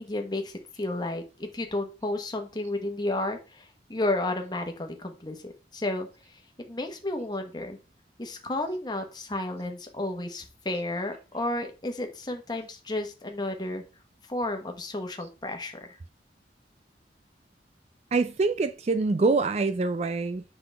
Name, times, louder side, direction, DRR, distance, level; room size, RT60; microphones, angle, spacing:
voice 1, 0.0-6.1 6.7-7.8 8.2-13.8 14.3-15.9, left 2 dB, 25° left, 1.2 m, -32 dB
voice 2, 18.1-20.4, right 3 dB, 35° right, 0.4 m, -25 dB
7.9 x 5.7 x 3.4 m
head